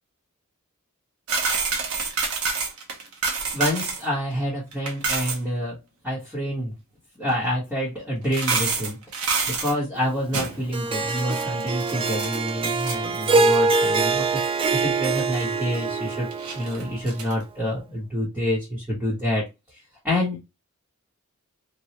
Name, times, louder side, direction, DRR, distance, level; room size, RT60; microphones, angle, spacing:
sound 1, 1.3-4.1 4.3-4.4 4.7-5.4 7.3-7.4 8.2-9.7 10.3-10.7 11.2-13.6 13.8-13.9 14.4-14.7 15.2-15.3 16.3-17.3, right 4 dB, 80° right, 0.9 m, -28 dB
voice 1, 3.5-5.8 6.0-6.7 7.2-9.0 9.6-14.4 14.7-16.3 16.5-19.4 20.0-20.4, equal, 5° right, -8 dB, 1.2 m, -27 dB
Harp, 10.7-17.1, right 3 dB, 25° right, 0.3 m, -24 dB
3.1 x 2.5 x 2.8 m, 0.23 s
head